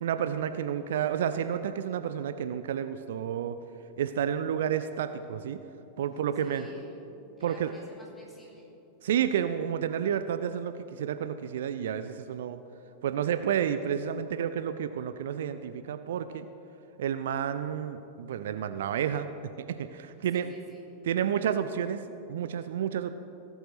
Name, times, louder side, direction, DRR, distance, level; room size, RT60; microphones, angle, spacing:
voice 1, 0.0-3.6 4.0-5.6 6.0-6.6 7.4-7.7 9.0-12.6 13.0-16.5 17.0-19.3 19.7-20.5 21.1-22.0 22.3-23.1, right 9 dB, 60° right, 10 dB, 0.3 m, -30 dB
voice 2, 6.3-7.0 7.4-8.7 20.3-20.8, equal, 10° left, -3 dB, 2.5 m, -50 dB
17.5 x 8.0 x 3.2 m, 2.9 s
figure-of-eight pair, 90°, 0 cm